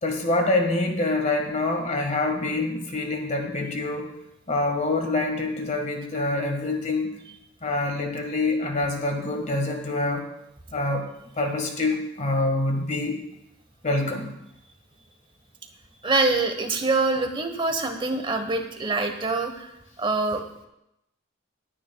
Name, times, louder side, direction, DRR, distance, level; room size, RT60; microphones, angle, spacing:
voice 1, 0.0-4.1 4.5-7.1 7.6-10.3 10.7-11.0 11.4-13.2 13.8-14.3, left 2 dB, 40° left, 3 dB, 1.8 m, -26 dB
voice 2, 16.0-19.7 20.0-20.4, right 3 dB, 25° right, 5 dB, 1.2 m, -25 dB
21.0 x 9.7 x 2.3 m, 0.85 s
head